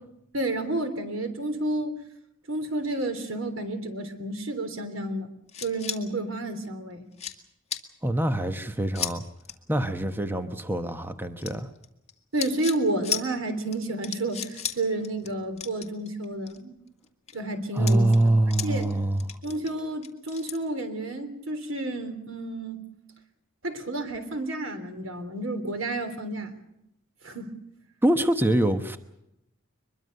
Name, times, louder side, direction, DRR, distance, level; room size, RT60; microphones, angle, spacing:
voice 1, 0.3-2.0 2.5-5.3 5.6-7.0 12.3-16.8 17.3-18.3 18.6-19.0 19.4-22.8 23.6-26.5 27.2-27.5, right 2 dB, 75° right, 8 dB, 3.5 m, -30 dB
sound 1, 5.5-6.0 6.6-6.7 7.1-7.4 7.7-7.8 8.9-9.1 9.4-9.5 11.4-12.1 12.4-12.8 13.0-13.2 13.7-13.8 14.0-14.8 15.0-15.3 15.6-16.6 17.0-17.3 17.8-18.9 19.2-20.6, left 8 dB, 35° left, 2.0 m, -34 dB
voice 2, 8.0-9.2 9.7-11.7 17.7-19.3 28.0-29.0, right 1 dB, 10° right, 8 dB, 1.0 m, -24 dB
23.5 x 22.0 x 6.7 m, 0.83 s
head